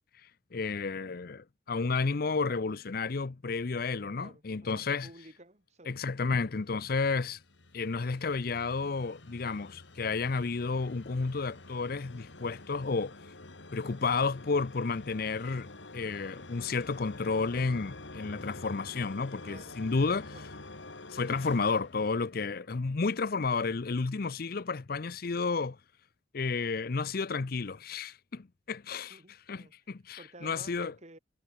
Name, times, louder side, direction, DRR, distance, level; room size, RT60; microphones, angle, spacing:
voice 1, 0.5-5.1 5.9-7.4 7.7-13.1 13.7-20.3 21.1-25.8 26.3-29.2 29.5-30.9, left 4 dB, 55° left, 0.6 m, -31 dB
voice 2, 4.2-5.9 19.4-19.7 20.3-20.4 29.1-29.7 30.2-31.2, right 2 dB, 40° right, 5.3 m, -52 dB
sound 1, 6.7-22.8, left 2 dB, 80° left, 2.8 m, -48 dB
head